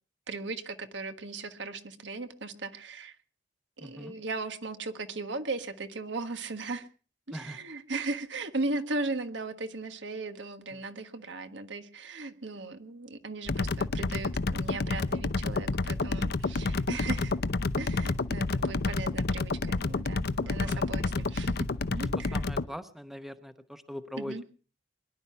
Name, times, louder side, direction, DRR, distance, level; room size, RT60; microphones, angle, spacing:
voice 1, 0.3-3.1 3.8-6.9 7.3-17.4 17.8-22.4 24.2-24.4, right 3 dB, 70° right, 9 dB, 1.5 m, -37 dB
voice 2, 3.8-4.1 7.3-7.6 10.7-10.8 16.6-16.8 20.5-20.8 22.2-24.4, equal, ahead, 10 dB, 0.9 m, -42 dB
sound 1, 13.5-22.6, left 3 dB, 60° left, 0.7 m, -29 dB
22.5 x 11.5 x 5.6 m, 0.40 s
head